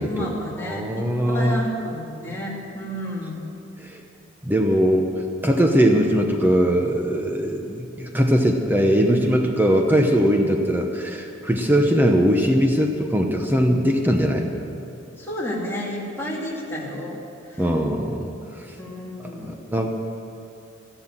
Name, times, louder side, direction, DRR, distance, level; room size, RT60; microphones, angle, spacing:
voice 1, 0.0-3.4 15.2-17.2 17.5-17.6 18.7-19.5, equal, 10° left, -5 dB, 2.8 m, -31 dB
voice 2, 0.6-1.6 3.8-4.0 4.4-5.1 5.4-14.5 17.6-18.3 19.2-19.9, equal, 10° right, 2 dB, 0.9 m, -20 dB
14.0 x 12.0 x 7.5 m, 2.6 s
head